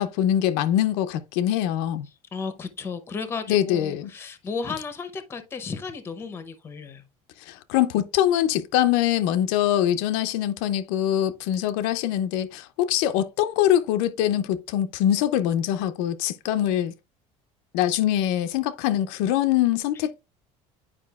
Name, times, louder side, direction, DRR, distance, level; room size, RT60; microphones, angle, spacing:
voice 1, 0.0-2.1 3.5-4.1 7.5-16.9 17.7-20.2, left 11 dB, 85° left, 0.5 m, -23 dB
voice 2, 2.3-7.0, left 5 dB, 20° left, 0.7 m, -34 dB
9.6 x 4.8 x 2.3 m
cardioid pair, 165°, 13 cm